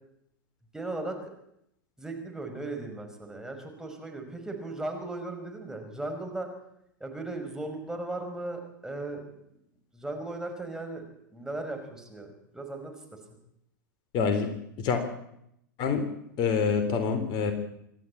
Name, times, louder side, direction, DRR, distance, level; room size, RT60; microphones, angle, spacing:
voice 1, 0.7-1.3 2.0-6.5 7.0-9.2 9.9-13.2, right 2 dB, 5° right, 3 dB, 5.2 m, -37 dB
voice 2, 14.1-14.5 14.8-15.0 15.8-16.1 16.4-17.5, left 5 dB, 40° left, 8 dB, 3.5 m, -26 dB
26.5 x 12.5 x 8.6 m, 0.78 s
hypercardioid pair, 100°, 11 cm